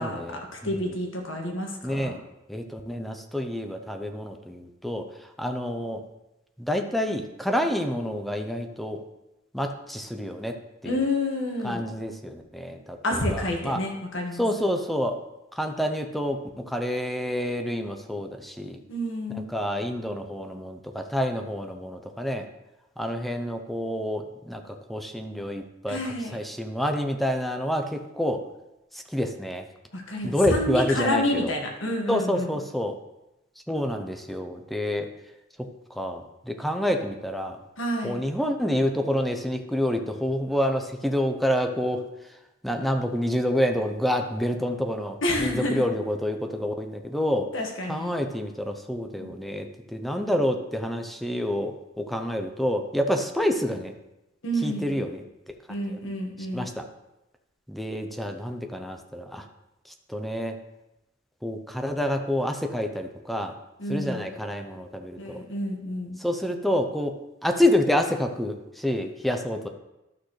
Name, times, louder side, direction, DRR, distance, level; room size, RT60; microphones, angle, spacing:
voice 1, 0.0-0.9 1.8-2.1 2.5-6.0 6.6-9.0 9.5-10.6 10.8-11.0 11.6-13.8 14.3-15.2 15.5-18.8 19.3-22.5 23.0-28.4 28.9-29.7 30.2-31.5 32.1-33.0 33.7-35.1 36.0-37.6 38.0-42.0 42.6-47.5 47.9-53.9 54.6-55.5 55.9-56.0 56.5-56.9 57.7-59.5 60.1-60.6 61.4-63.5 63.9-65.4 66.2-67.2 67.4-69.7, equal, ahead, 5 dB, 0.6 m, -28 dB
voice 2, 0.6-2.2 10.8-11.8 13.0-14.4 18.9-19.5 25.9-26.3 29.9-32.6 37.8-38.2 45.2-45.8 47.5-48.1 49.2-49.3 54.4-55.0 55.7-56.7 63.8-64.3 65.2-66.2, left 1 dB, 65° left, 1 dB, 1.6 m, -29 dB
12.0 x 6.4 x 3.2 m, 0.95 s
head